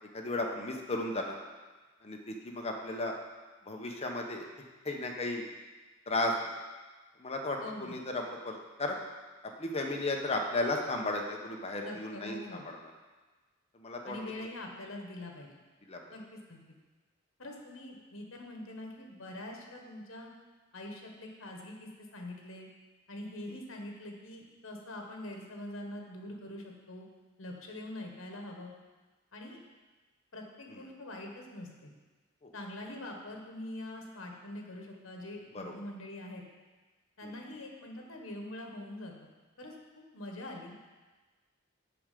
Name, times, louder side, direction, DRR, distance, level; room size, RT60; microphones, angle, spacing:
voice 1, 0.1-1.4 2.0-3.1 3.7-4.4 4.8-5.4 6.1-6.4 7.2-9.0 9.6-12.8 13.7-14.2 15.9-16.0 30.7-30.8 32.4-32.5 35.5-35.7 37.2-37.4, left 2 dB, 30° left, 1 dB, 0.9 m, -34 dB
voice 2, 7.6-8.0 11.8-12.6 14.0-15.5 16.1-16.6 17.4-20.3 20.7-22.7 23.1-27.1 27.4-28.7 29.3-29.6 30.3-31.9 32.5-36.4 37.2-39.3 39.6-39.7 40.1-40.9, left 1 dB, 70° left, 1 dB, 1.4 m, -44 dB
7.0 x 4.9 x 6.7 m, 1.3 s
head